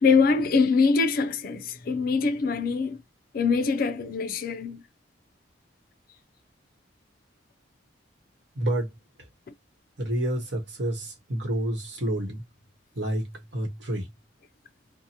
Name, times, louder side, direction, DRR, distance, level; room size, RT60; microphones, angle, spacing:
voice 1, 0.0-3.0 3.3-4.8, left 4 dB, 50° left, 0.4 m, -23 dB
voice 2, 8.5-8.9 10.0-12.4 13.0-14.1, right 1 dB, 65° right, 1.0 m, -29 dB
2.7 x 2.0 x 2.7 m
head